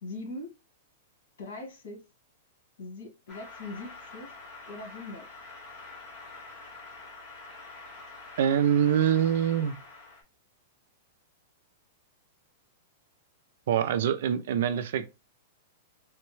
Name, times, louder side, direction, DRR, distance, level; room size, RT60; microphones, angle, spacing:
voice 1, 0.0-0.5 1.4-2.0 2.8-4.3 4.6-5.2, left 2 dB, 85° left, 1.4 m, -41 dB
sound 1, 3.3-10.2, left 3 dB, 25° left, 1.0 m, -46 dB
voice 2, 8.4-9.7 13.7-15.1, right 9 dB, 55° right, 0.3 m, -24 dB
3.5 x 2.1 x 3.0 m
supercardioid pair, 175°, 0 cm